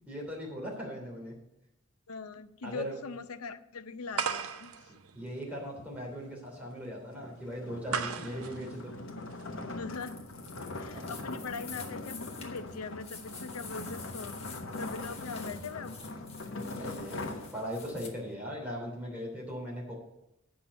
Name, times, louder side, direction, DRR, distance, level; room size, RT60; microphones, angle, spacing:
voice 1, 0.1-1.4 2.6-2.9 5.1-9.0 10.7-11.1 16.7-17.3 17.5-19.9, equal, 5° right, -3 dB, 3.0 m, -39 dB
voice 2, 2.1-4.9 7.9-8.3 9.6-10.2 10.8-16.0, left 4 dB, 85° left, 11 dB, 0.6 m, -41 dB
sound 1, 4.1-9.8, right 6 dB, 85° right, 0.7 m, -38 dB
sound 2, 7.1-18.1, left 2 dB, 60° left, 1.1 m, -41 dB
sound 3, 9.9-18.1, left 5 dB, 30° left, 1.4 m, -49 dB
8.5 x 5.8 x 8.1 m, 0.88 s
head